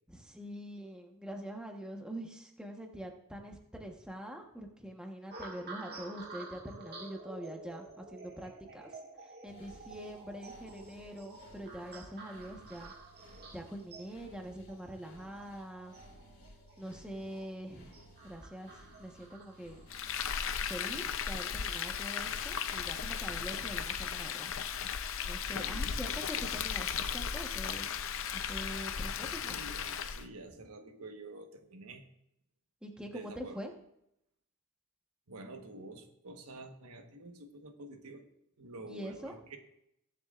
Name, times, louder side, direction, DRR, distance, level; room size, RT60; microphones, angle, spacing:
voice 1, 0.1-12.9 13.3-16.0 16.8-19.8 20.6-24.5 24.9-27.9 28.3-29.6 32.8-33.7 38.9-39.4, equal, 5° right, 1 dB, 1.1 m, -44 dB
sound 1, 5.3-21.8 22.4-22.7, right 3 dB, 45° right, 1.8 m, -51 dB
sound 2, 9.5-24.0, equal, 45° left, 3.1 m, -58 dB
Frying (food), 19.9-30.3, left 7 dB, 60° left, 0.6 m, -36 dB
voice 2, 25.5-26.2 29.5-32.0 33.1-33.6 35.3-38.3 38.6-39.6, right 2 dB, 90° right, 5 dB, 1.3 m, -48 dB
22.0 x 7.6 x 2.5 m, 0.78 s
head